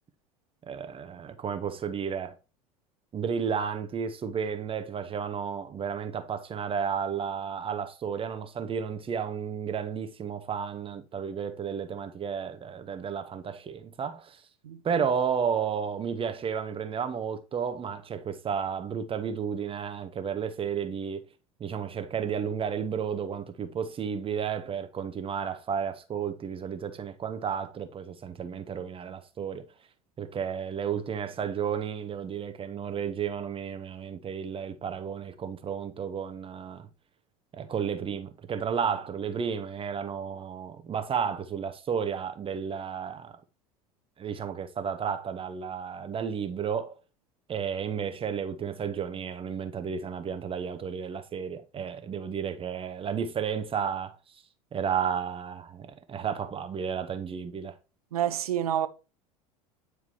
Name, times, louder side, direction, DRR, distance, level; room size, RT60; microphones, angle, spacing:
voice 1, 0.7-2.4 3.1-14.4 14.8-21.2 21.6-29.7 30.2-36.9 37.5-43.4 44.2-47.0 47.5-54.2 54.7-57.8, right 7 dB, 30° right, 0.8 m, -32 dB
voice 2, 58.1-58.9, right 10 dB, 75° right, 0.8 m, -28 dB
9.6 x 4.7 x 2.9 m
hypercardioid pair, 75°, 19 cm